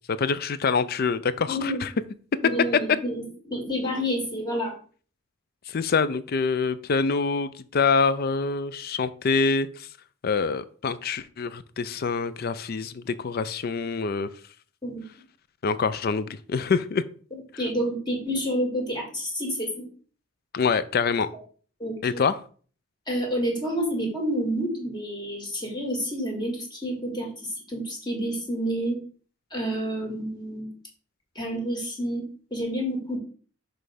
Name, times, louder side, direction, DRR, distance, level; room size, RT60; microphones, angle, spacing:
voice 1, 0.1-1.9 5.7-9.9 10.2-14.3 15.6-17.0 20.5-21.3 22.0-22.4, left 5 dB, 50° left, 15 dB, 0.4 m, -25 dB
voice 2, 1.5-1.8 2.4-4.8 14.8-15.0 17.6-19.9 21.8-22.2 23.1-29.0 29.5-30.7 31.4-33.2, equal, 20° left, 0 dB, 1.9 m, -29 dB
6.2 x 3.3 x 5.0 m, 0.43 s
head